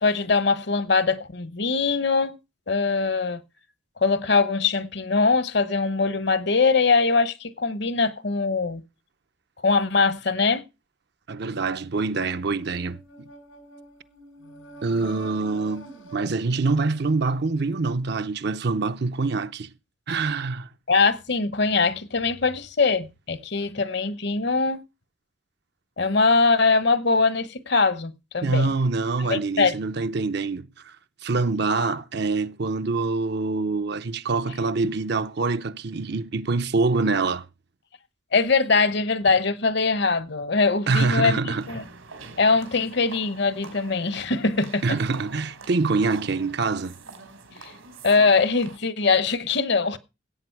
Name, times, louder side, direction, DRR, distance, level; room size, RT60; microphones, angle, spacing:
voice 1, 0.0-2.4 2.7-3.4 4.0-8.8 9.6-10.6 20.9-24.8 26.0-28.7 29.3-29.7 38.3-41.8 42.4-45.0 47.6-47.7 48.0-50.0, left 4 dB, 55° left, 1.0 m, -22 dB
voice 2, 11.3-13.3 14.8-19.7 20.1-20.7 28.4-31.0 31.2-37.5 40.9-41.6 44.8-47.0, right 3 dB, 55° right, 0.6 m, -25 dB
sound 1, 11.9-17.7, right 3 dB, 85° left, 4.1 m, -47 dB
sound 2, 41.5-48.8, right 4 dB, 90° right, 3.3 m, -44 dB
16.5 x 8.5 x 4.6 m
head